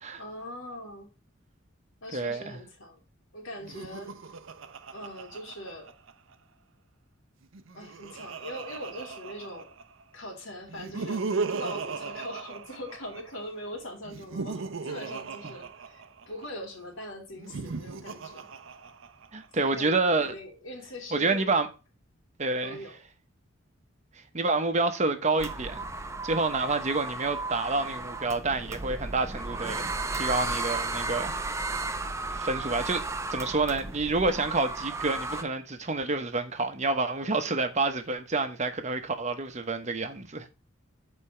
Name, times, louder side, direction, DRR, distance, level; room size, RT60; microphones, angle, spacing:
voice 1, 0.2-1.1 2.0-3.0 3.3-4.1 4.9-5.9 7.7-9.7 10.1-18.5 19.5-21.5 22.6-23.0 37.2-37.7, equal, 90° left, 2.6 m, -41 dB
voice 2, 2.1-2.6 15.4-15.5 19.3-20.3 21.1-21.7 22.4-22.8 24.3-25.9 26.2-31.7 32.3-40.5, right 3 dB, 35° right, 0.9 m, -28 dB
Laughter, 3.6-6.3 7.4-10.0 10.7-13.4 14.0-16.5 17.3-19.5, right 4 dB, 75° right, 0.6 m, -37 dB
sound 1, 25.4-35.4, right 3 dB, 15° right, 0.6 m, -34 dB
6.8 x 4.3 x 5.5 m
head